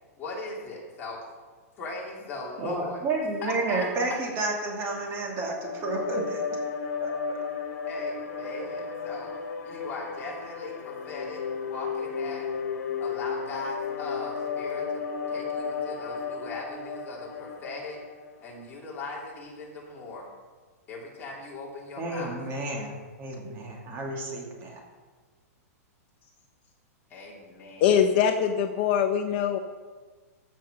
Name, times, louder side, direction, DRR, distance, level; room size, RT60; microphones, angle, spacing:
voice 1, 0.2-1.2 1.8-3.0 3.4-4.2 7.9-9.3 9.6-12.5 13.0-18.0 18.4-20.3 20.9-22.3 26.2-26.3 27.1-28.0, left 3 dB, 20° left, -4 dB, 3.3 m, -39 dB
voice 2, 2.6-6.4 7.0-7.1 22.0-22.9 23.2-24.8, right 2 dB, 30° right, 0 dB, 2.5 m, -31 dB
sound 1, 5.2-18.6, left 6 dB, 90° left, 1.4 m, -34 dB
voice 3, 27.8-29.6, left 8 dB, 45° left, 6 dB, 0.8 m, -23 dB
15.0 x 6.3 x 5.8 m, 1.4 s
hypercardioid pair, 150°, 9 cm